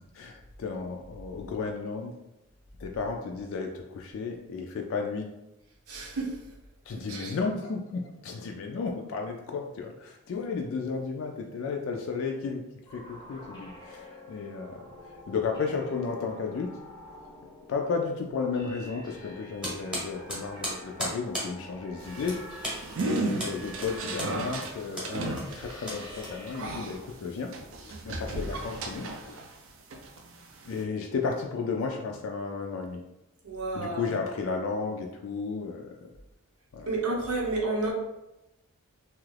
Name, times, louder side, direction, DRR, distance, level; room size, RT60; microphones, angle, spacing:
voice 1, 0.0-2.2 2.8-5.3 6.9-12.6 12.9-14.8 15.3-16.7 17.7-27.5 27.8-29.4 30.7-33.0 33.7-36.1 36.7-36.9, left 4 dB, 60° left, 2 dB, 0.3 m, -33 dB
voice 2, 5.9-6.4 7.1-7.4 33.4-34.1 36.9-37.9, right 2 dB, 85° right, -2 dB, 0.8 m, -30 dB
sound 1, 12.9-26.8, equal, 20° left, 0.6 m, -48 dB
sound 2, 19.6-26.8, equal, 5° right, 0.9 m, -37 dB
sound 3, 22.0-29.6 29.9-30.8, right 2 dB, 60° right, 0.4 m, -35 dB
2.7 x 2.4 x 3.2 m, 0.94 s
head